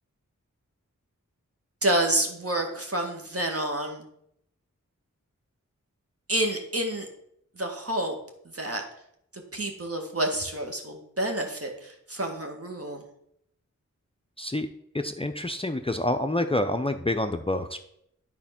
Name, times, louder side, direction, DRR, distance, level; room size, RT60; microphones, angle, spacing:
voice 1, 1.8-4.0 6.3-7.1 7.6-8.2 8.5-8.8 9.5-13.0, right 1 dB, 45° right, 3 dB, 2.0 m, -28 dB
voice 2, 14.4-14.7 14.9-17.8, left 1 dB, 15° left, 6 dB, 0.6 m, -27 dB
9.8 x 4.3 x 5.9 m, 0.73 s
cardioid pair, 40°, 32 cm